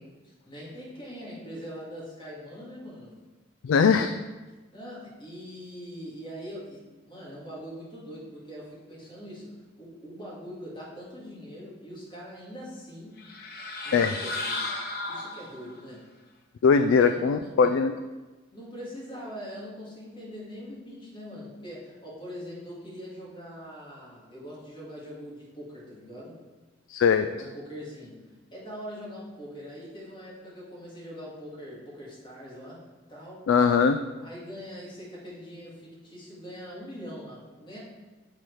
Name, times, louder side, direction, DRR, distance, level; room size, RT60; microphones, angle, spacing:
voice 1, 0.2-3.1 4.7-9.5 9.8-13.2 13.8-14.6 15.1-16.1 16.8-17.6 18.5-26.4 27.2-28.2 28.5-32.8 33.1-33.5 34.2-37.8, equal, 25° left, -6 dB, 2.2 m, -42 dB
voice 2, 3.6-4.1 13.9-14.2 16.6-17.9 26.9-27.3 33.5-34.0, left 5 dB, 80° left, 9 dB, 0.3 m, -20 dB
sound 1, 13.2-15.8, left 2 dB, 50° left, 0.9 m, -34 dB
7.8 x 4.3 x 4.8 m, 1.2 s
head